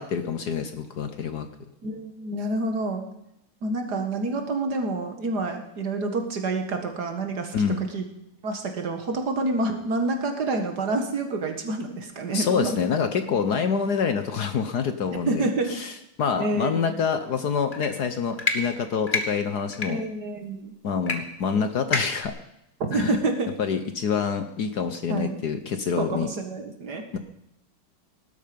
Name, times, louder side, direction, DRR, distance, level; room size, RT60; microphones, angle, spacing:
voice 1, 0.0-1.5 7.5-7.8 12.3-20.0 20.8-22.3 22.9-23.2 23.6-26.3 27.1-27.2, left 6 dB, 60° left, 9 dB, 1.3 m, -26 dB
voice 2, 1.8-3.0 3.6-7.5 7.9-8.1 8.4-12.8 15.2-15.7 16.4-16.8 19.9-20.7 22.9-23.5 25.1-25.4 26.0-27.2, right 2 dB, 50° right, 5 dB, 2.2 m, -28 dB
sound 1, 17.7-17.9 18.4-18.6 19.1-19.2 19.7-19.9 21.1-21.2 21.4-21.5 21.9-22.3, left 3 dB, 25° left, 1.5 m, -26 dB
18.5 x 12.0 x 5.3 m, 0.83 s
omnidirectional pair, 2.3 m